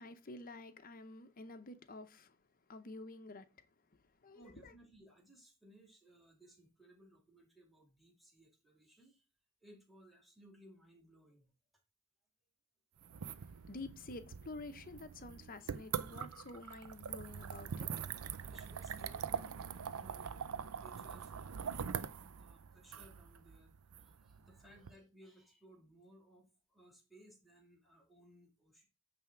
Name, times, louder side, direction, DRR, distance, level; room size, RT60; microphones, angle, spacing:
voice 1, 0.0-2.4 2.7-3.5 4.2-4.7 13.7-17.9, left 2 dB, 40° left, 0.8 m, -49 dB
voice 2, 4.3-9.2 9.6-11.5 18.5-28.8, right 1 dB, ahead, 2.2 m, -62 dB
sound 1, 13.0-24.9, right 7 dB, 80° right, 0.5 m, -43 dB
9.1 x 3.5 x 5.8 m
head